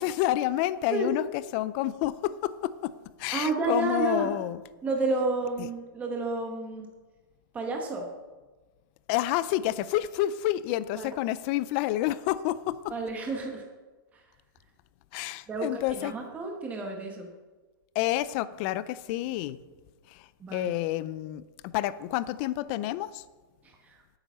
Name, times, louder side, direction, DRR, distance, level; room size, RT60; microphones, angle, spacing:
voice 1, 0.0-2.9 3.2-4.6 5.6-5.7 9.1-12.9 15.1-16.1 17.9-19.6 20.1-23.2, left 14 dB, 30° left, 16 dB, 0.4 m, -29 dB
voice 2, 3.3-4.3 4.8-6.9 7.5-8.0 11.0-11.1 12.9-13.6 15.5-17.3 20.4-20.7 23.8-24.0, right 3 dB, 10° right, 1 dB, 1.1 m, -30 dB
8.8 x 8.8 x 5.6 m, 1.3 s
hypercardioid pair, 160°, 12 cm